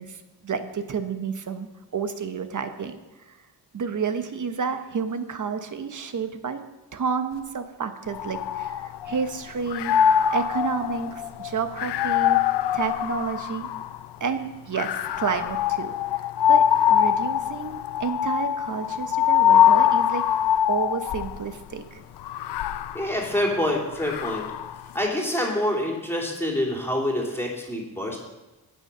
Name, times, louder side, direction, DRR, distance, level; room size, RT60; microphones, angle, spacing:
voice 1, 0.0-1.7 1.9-2.9 3.3-3.4 3.7-6.6 6.9-12.4 12.7-13.7 14.2-20.2 20.7-22.0, right 5 dB, 50° right, 8 dB, 1.1 m, -30 dB
sound 1, 8.1-9.3 9.7-14.1 14.7-21.4 22.2-24.8, left 10 dB, 90° left, 0.6 m, -23 dB
voice 2, 22.9-24.4 24.9-28.2, left 1 dB, 5° left, -2 dB, 3.1 m, -26 dB
17.5 x 6.7 x 5.6 m, 1.1 s
wide cardioid pair, 115°, 40 cm